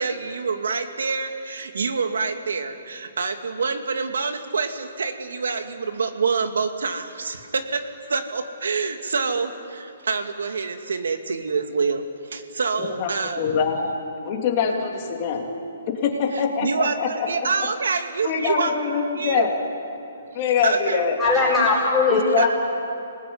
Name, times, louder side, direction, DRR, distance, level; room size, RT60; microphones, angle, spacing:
voice 1, 0.0-13.5 16.3-19.5 20.6-21.2 22.4-22.5, right 4 dB, 90° right, 7 dB, 2.4 m, -26 dB
voice 2, 12.8-13.9 14.2-15.5 15.9-17.3 18.2-19.6 20.3-21.2 22.1-22.5, left 6 dB, 30° left, 1 dB, 3.1 m, -24 dB
voice 3, 21.2-22.5, left 3 dB, ahead, -12 dB, 5.1 m, -20 dB
28.0 x 20.0 x 9.6 m, 2.7 s
hypercardioid pair, 170°, 0 cm